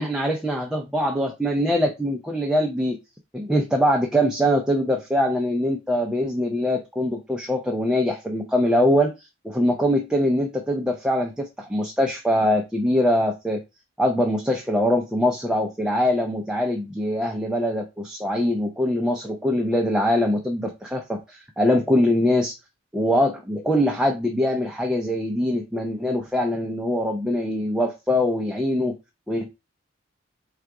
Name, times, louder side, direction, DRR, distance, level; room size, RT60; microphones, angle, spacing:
voice 1, 0.0-3.0 3.3-9.1 9.4-13.6 14.0-22.5 22.9-28.9 29.3-29.5, left 1 dB, 5° right, 0 dB, 0.4 m, -23 dB
3.8 x 2.4 x 4.6 m, 0.24 s
head